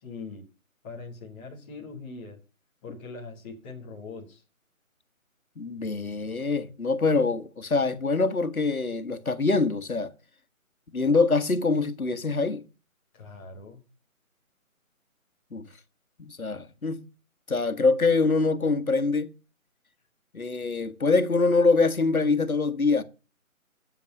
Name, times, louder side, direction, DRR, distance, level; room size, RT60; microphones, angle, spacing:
voice 1, 0.0-0.4 0.8-2.4 2.8-4.4 13.1-13.8, left 4 dB, 10° left, 1.2 m, -41 dB
voice 2, 5.5-10.1 10.9-12.6 15.5-15.7 16.2-17.0 17.5-19.3 20.3-23.0, left 3 dB, 85° left, 1.6 m, -24 dB
13.0 x 7.5 x 6.5 m
figure-of-eight pair, 155°, 42 cm